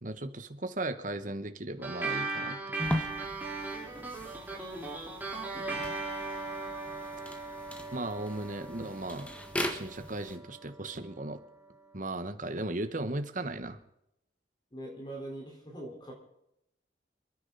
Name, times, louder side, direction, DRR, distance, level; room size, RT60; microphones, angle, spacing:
voice 1, 0.0-3.1 7.9-9.3 9.7-11.4 11.9-13.8, right 2 dB, 45° right, 9 dB, 1.3 m, -37 dB
sound 1, 1.8-10.6, right 3 dB, 10° right, 4.0 m, -38 dB
sound 2, 2.8-10.4, left 1 dB, 5° left, 1.6 m, -39 dB
voice 2, 5.5-5.8 14.7-16.1, right 1 dB, 25° left, -2 dB, 4.3 m, -43 dB
28.5 x 10.0 x 4.1 m, 0.81 s
head